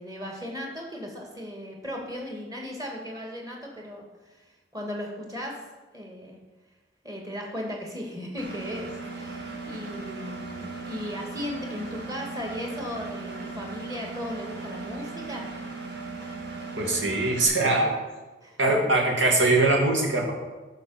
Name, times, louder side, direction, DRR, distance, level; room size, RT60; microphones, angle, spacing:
voice 1, 0.0-5.6 5.9-6.4 7.0-8.9 9.2-15.5 18.4-18.6, left 1 dB, 20° right, 0 dB, 2.0 m, -36 dB
Engine, 8.4-17.4, right 3 dB, 55° right, 1.6 m, -37 dB
voice 2, 16.8-17.9 18.6-20.3, right 2 dB, 90° right, 0 dB, 2.5 m, -22 dB
11.5 x 4.9 x 7.1 m, 1.2 s
head